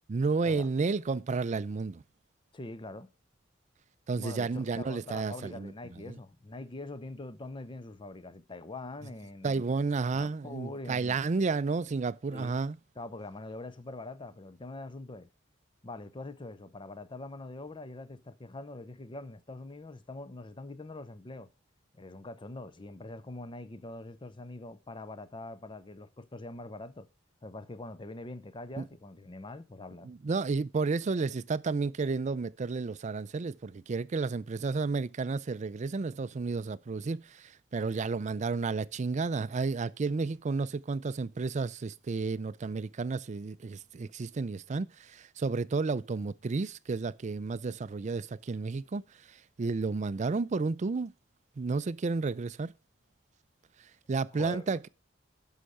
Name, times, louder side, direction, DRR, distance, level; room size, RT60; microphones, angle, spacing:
voice 1, 0.1-2.0 4.1-5.7 6.0-6.2 9.4-12.8 28.8-28.9 30.0-49.0 49.6-51.1 51.6-52.7 54.1-54.9, right 4 dB, 35° right, 0.4 m, -31 dB
voice 2, 2.5-3.1 4.1-9.6 10.1-11.2 12.3-12.5 13.0-15.3 15.8-21.5 21.9-27.1 27.4-30.1 54.3-54.8, left 2 dB, 25° left, 0.7 m, -43 dB
11.5 x 5.7 x 4.9 m
head